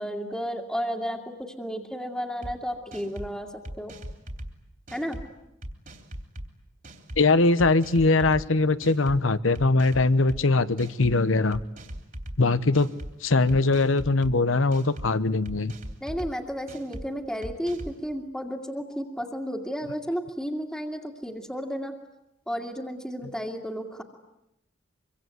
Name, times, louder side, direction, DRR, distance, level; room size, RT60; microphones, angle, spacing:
voice 1, 0.0-3.9 4.9-5.2 16.0-21.9 22.5-24.0, equal, 5° left, -4 dB, 2.2 m, -32 dB
sound 1, 2.4-2.5 2.9-3.3 3.6-4.5 4.9-5.2 5.6-6.5 6.8-7.2 7.6-8.4 8.8-9.2 9.5-10.4 10.8-11.2 11.5-12.4 12.7-13.1 13.5-14.3 14.7-15.1 15.4-16.3 16.7-17.0 17.4-18.0, equal, 45° right, 3.4 m, -39 dB
voice 2, 7.2-11.6 12.4-12.9 13.2-15.7, left 3 dB, 85° left, 14 dB, 1.0 m, -21 dB
25.5 x 24.5 x 9.4 m, 0.86 s
head